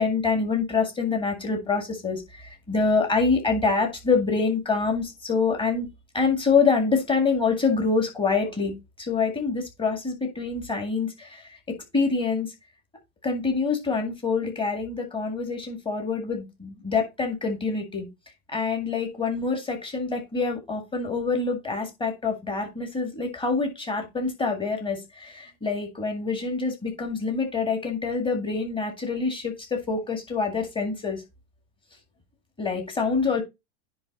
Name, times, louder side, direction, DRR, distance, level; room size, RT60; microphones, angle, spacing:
voice 1, 0.0-5.9 6.1-11.4 11.7-12.5 13.2-18.1 18.5-31.2 32.6-33.4, left 4 dB, 10° left, 3 dB, 2.0 m, -26 dB
9.9 x 3.4 x 4.1 m, 0.23 s
supercardioid pair, 155°, 43 cm